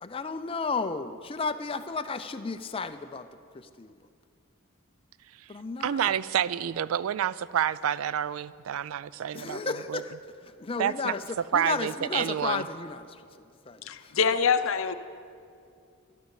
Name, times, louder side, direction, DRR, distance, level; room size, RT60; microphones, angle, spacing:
voice 1, 0.0-3.3 3.5-4.0 5.5-6.2 9.3-13.2 13.6-14.1, left 4 dB, 25° left, 9 dB, 0.5 m, -33 dB
voice 2, 5.8-9.6 9.9-10.0 10.8-11.1 11.5-12.6, right 9 dB, 70° right, 18 dB, 0.3 m, -28 dB
voice 3, 13.9-14.9, left 6 dB, 65° left, 11 dB, 0.6 m, -25 dB
13.0 x 11.0 x 7.1 m, 2.4 s
head